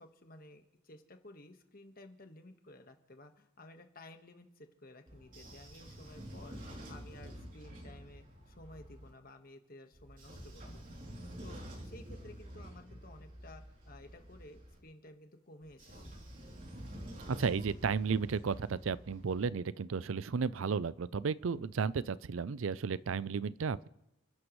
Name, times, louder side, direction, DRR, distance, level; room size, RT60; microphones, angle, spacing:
voice 1, 0.0-6.6 6.9-10.8 11.4-15.9, left 1 dB, 45° left, 6 dB, 1.5 m, -54 dB
Train / Sliding door, 5.1-9.1 9.9-14.8 15.6-19.5, equal, 40° right, 3.1 m, -49 dB
voice 2, 17.4-23.9, right 5 dB, 80° right, 18 dB, 0.5 m, -33 dB
30.0 x 11.5 x 3.2 m, 0.93 s
head